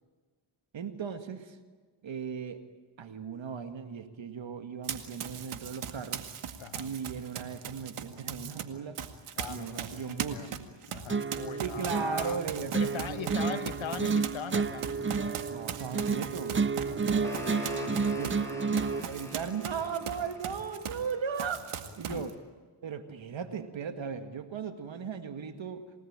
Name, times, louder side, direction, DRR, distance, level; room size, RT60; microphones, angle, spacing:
voice 1, 0.7-1.6 2.0-2.6 3.0-6.2 6.8-9.0 9.5-10.6 11.6-12.7 13.1-13.6 15.5-16.6 18.2-18.7 18.9-21.7 22.0-22.3 22.8-25.8, right 6 dB, 65° right, 8 dB, 2.1 m, -37 dB
Run, 4.8-8.6 9.0-21.1 21.4-22.3, right 8 dB, 85° right, 2.1 m, -39 dB
voice 2, 6.6-6.9 9.4-10.5 10.9-12.4 12.7-15.0 17.7-18.8 22.1-22.3, left 9 dB, 65° left, 12 dB, 1.5 m, -41 dB
sound 1, 11.1-19.1, right 5 dB, 25° right, 0.7 m, -31 dB
sound 2, 16.8-21.9, left 3 dB, 5° left, 5.8 m, -44 dB
28.5 x 18.5 x 8.9 m, 1.5 s
cardioid pair, 70°, 50 cm